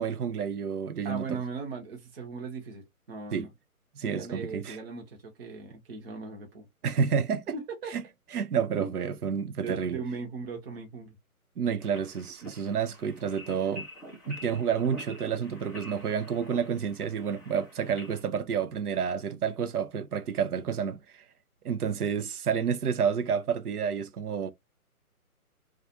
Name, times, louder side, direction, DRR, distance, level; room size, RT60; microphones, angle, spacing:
voice 1, 0.0-1.4 3.3-3.5 4.0-4.8 6.8-7.4 7.9-8.0 8.3-10.0 11.6-13.9 14.3-21.2 21.6-24.5, right 7 dB, 80° right, 0.6 m, -29 dB
voice 2, 1.0-3.5 4.0-6.6 7.5-7.9 8.8-8.9 9.6-11.2, right 4 dB, 40° right, 0.8 m, -38 dB
sound 1, 11.8-18.2, equal, 5° left, 0.7 m, -47 dB
2.4 x 2.3 x 2.5 m
hypercardioid pair, 150°, 44 cm